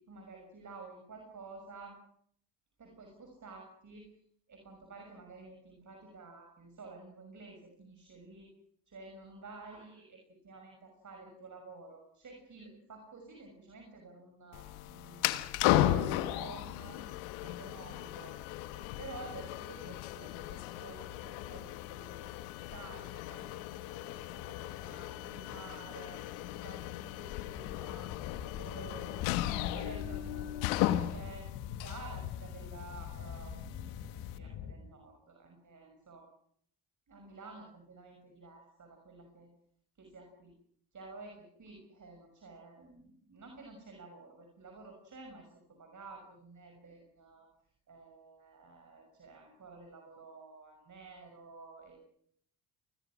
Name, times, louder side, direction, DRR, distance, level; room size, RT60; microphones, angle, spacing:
voice 1, 0.0-2.0 2.8-4.1 4.5-8.5 8.9-10.2 10.4-17.0 17.4-18.4 19.0-26.2 26.6-28.2 28.5-31.5 31.8-33.9 34.3-36.3 37.1-39.5 40.0-40.6 40.9-47.5 47.9-52.0, right 3 dB, 40° right, 3 dB, 6.3 m, -51 dB
sound 1, 14.5-34.4, left 14 dB, 80° left, 1.4 m, -36 dB
sound 2, 27.5-34.7, left 8 dB, 65° left, 3.5 m, -45 dB
29.0 x 21.0 x 6.2 m, 0.67 s
supercardioid pair, 65°, 44 cm